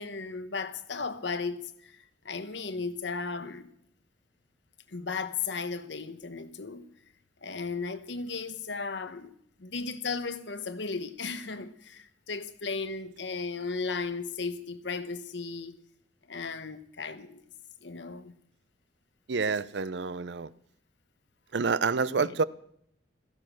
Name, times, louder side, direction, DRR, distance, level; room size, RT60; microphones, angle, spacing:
voice 1, 0.0-3.7 4.9-6.9 7.4-9.3 9.6-15.8 16.3-17.4 17.8-18.3 22.1-22.4, left 4 dB, 70° left, 1.1 m, -35 dB
voice 2, 19.3-20.5 21.5-22.4, right 4 dB, 65° right, 0.6 m, -28 dB
16.5 x 14.0 x 6.2 m
head